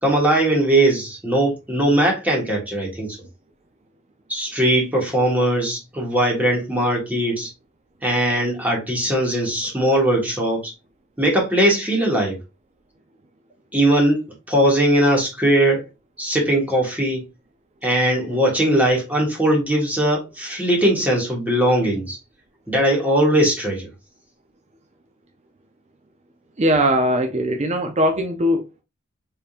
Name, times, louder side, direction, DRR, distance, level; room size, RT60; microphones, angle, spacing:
voice 1, 0.0-3.2 4.3-7.5 8.0-10.7 11.2-12.4 13.7-15.8 16.2-17.2 17.8-22.2 22.7-23.9, right 1 dB, 10° right, 1.6 m, -20 dB
voice 2, 26.6-28.8, equal, 35° right, 0.5 m, -20 dB
4.3 x 3.7 x 2.5 m
head